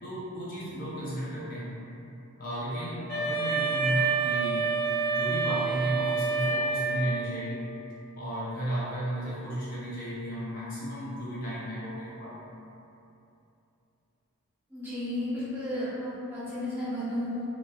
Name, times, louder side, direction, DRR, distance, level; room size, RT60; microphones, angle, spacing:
voice 1, 0.0-1.7 2.4-4.8 5.1-7.6 8.1-12.4, equal, 40° left, -8 dB, 0.5 m, -34 dB
Wind instrument woodwind instrument, 3.1-7.3, right 4 dB, 80° left, 1.0 m, -28 dB
voice 2, 14.7-17.4, left 1 dB, 10° right, -12 dB, 0.8 m, -33 dB
3.9 x 2.3 x 2.2 m, 2.8 s
head